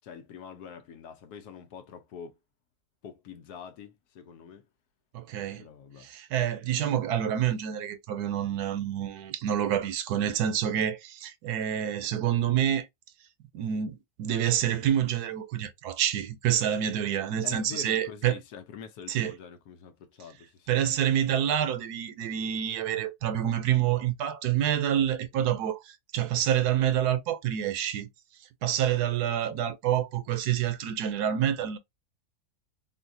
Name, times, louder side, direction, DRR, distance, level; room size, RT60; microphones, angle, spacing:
voice 1, 0.0-2.3 3.0-4.7 5.6-6.1 17.4-20.7 31.6-31.7, left 7 dB, 75° left, 1.2 m, -45 dB
voice 2, 5.1-5.6 6.0-12.9 13.5-18.4 19.1-19.3 20.7-28.1 28.6-31.8, right 10 dB, 80° right, 1.1 m, -27 dB
3.9 x 2.2 x 2.6 m
omnidirectional pair, 1.7 m